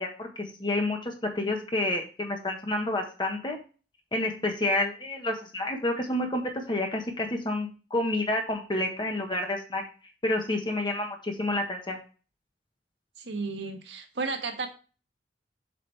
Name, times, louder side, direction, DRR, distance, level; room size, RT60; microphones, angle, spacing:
voice 1, 0.0-3.6 4.1-9.8 10.2-12.0, left 1 dB, 25° left, 2 dB, 1.4 m, -29 dB
voice 2, 13.2-14.7, right 4 dB, 75° right, 4 dB, 1.5 m, -33 dB
7.5 x 6.1 x 3.4 m, 0.35 s
head